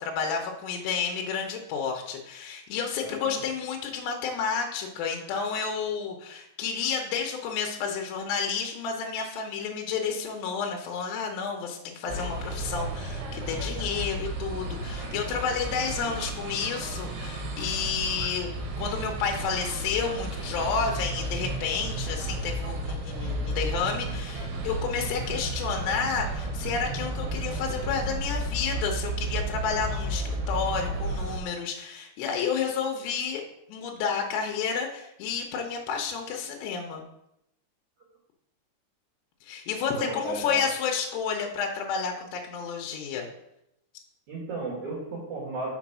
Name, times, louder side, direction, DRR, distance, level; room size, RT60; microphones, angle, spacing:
voice 1, 0.0-18.5 18.8-33.4 33.7-37.0 39.4-43.3, left 6 dB, 75° left, 2 dB, 2.7 m, -31 dB
voice 2, 3.0-3.4 39.9-40.6 44.3-45.7, right 2 dB, 50° right, -5 dB, 2.8 m, -34 dB
sound 1, 12.1-31.4, right 2 dB, 70° right, 3.1 m, -33 dB
6.1 x 5.1 x 6.0 m, 0.82 s
omnidirectional pair, 5.3 m